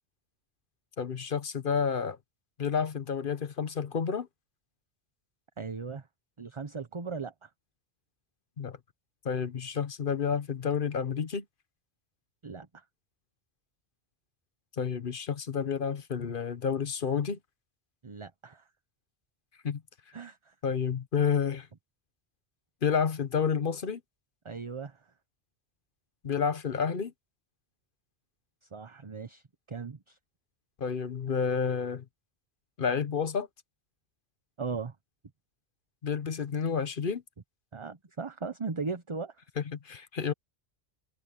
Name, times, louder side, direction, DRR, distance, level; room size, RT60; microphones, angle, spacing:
voice 1, 1.0-2.2 2.6-4.3 8.6-8.8 9.2-11.4 14.8-17.4 19.6-19.8 20.6-21.7 22.8-24.0 26.2-27.1 30.8-32.0 32.8-33.5 36.0-37.2 39.6-40.3, left 6 dB, 55° left, 1.1 m, -30 dB
voice 2, 5.6-6.1 6.4-7.5 12.4-12.8 18.0-18.7 20.1-20.5 24.4-25.1 28.6-30.2 34.6-35.0 37.7-39.4, right 4 dB, 30° right, 0.9 m, -38 dB
omnidirectional pair, 1.1 m